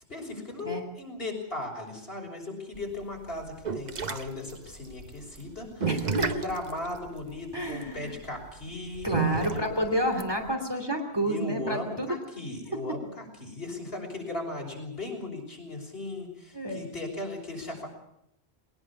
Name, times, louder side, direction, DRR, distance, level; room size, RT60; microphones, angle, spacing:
voice 1, 0.1-5.9 6.2-9.7 11.2-17.9, left 2 dB, 65° left, 0 dB, 6.2 m, -37 dB
sound 1, 2.7-10.5, right 5 dB, 45° right, 1.1 m, -32 dB
voice 2, 5.9-6.2 7.5-8.1 9.0-12.1 12.9-13.0 16.5-16.9, equal, 20° right, 3 dB, 2.8 m, -30 dB
21.0 x 19.5 x 7.3 m, 0.77 s
omnidirectional pair, 1.1 m